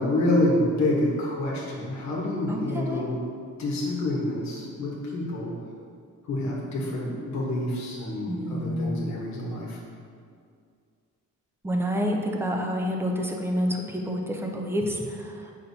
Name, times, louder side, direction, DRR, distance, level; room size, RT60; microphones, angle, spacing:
voice 1, 0.0-3.2 3.6-5.5 6.2-9.8, left 1 dB, 60° left, -3 dB, 1.2 m, -27 dB
voice 2, 2.5-3.1 8.3-9.0 11.6-15.5, equal, 10° right, 1 dB, 0.5 m, -28 dB
8.7 x 5.5 x 2.7 m, 2.2 s
wide cardioid pair, 175°, 31 cm